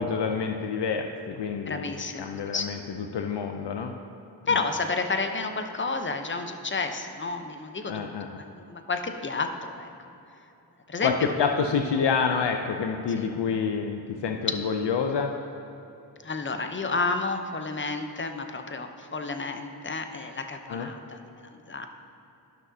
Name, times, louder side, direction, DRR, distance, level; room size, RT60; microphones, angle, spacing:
voice 1, 0.0-3.9 7.9-8.4 11.0-15.3 20.7-20.9, left 5 dB, 75° left, 4 dB, 0.5 m, -28 dB
voice 2, 1.7-2.7 4.5-8.1 8.4-9.9 10.9-11.3 13.2-13.3 16.2-21.9, left 3 dB, 30° left, 6 dB, 0.7 m, -31 dB
12.0 x 6.0 x 2.7 m, 2.9 s
cardioid pair, 50°, 42 cm